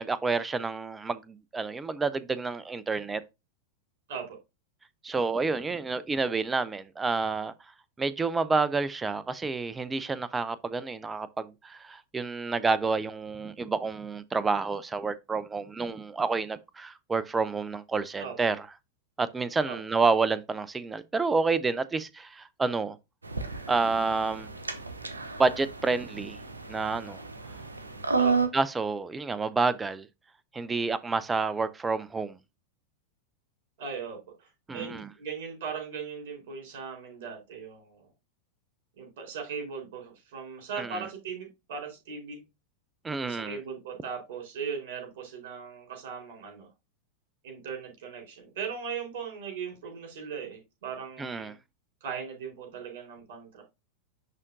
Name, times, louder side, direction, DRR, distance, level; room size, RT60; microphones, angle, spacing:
voice 1, 0.0-3.2 5.0-7.5 8.0-18.6 19.2-23.0 23.7-24.5 25.4-26.4 26.7-27.2 28.5-30.1 30.5-32.3 34.7-35.1 40.8-41.0 43.0-43.6 51.2-51.5, right 4 dB, 15° right, 0.6 m, -29 dB
sound 1, 23.2-28.5, right 4 dB, 75° right, 0.8 m, -32 dB
voice 2, 33.8-38.1 39.0-42.4 43.2-46.7 47.4-51.6 52.0-53.6, right 6 dB, 55° right, 4.0 m, -38 dB
10.5 x 3.7 x 2.6 m
figure-of-eight pair, 90°, 0 cm